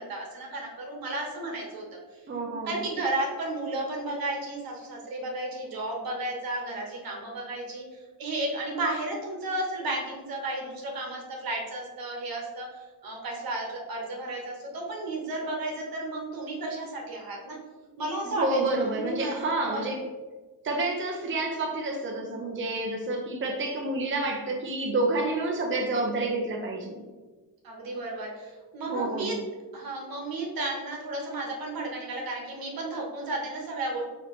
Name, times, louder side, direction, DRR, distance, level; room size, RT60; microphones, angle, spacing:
voice 1, 0.0-1.9 2.6-17.6 18.0-19.9 27.6-29.4 29.7-34.0, right 2 dB, 75° right, 0 dB, 1.2 m, -33 dB
voice 2, 2.3-2.8 18.2-20.0 20.6-27.0 28.9-29.4, right 2 dB, 35° right, 0 dB, 0.7 m, -29 dB
4.4 x 3.0 x 3.1 m, 1.3 s
cardioid pair, 90°, 35 cm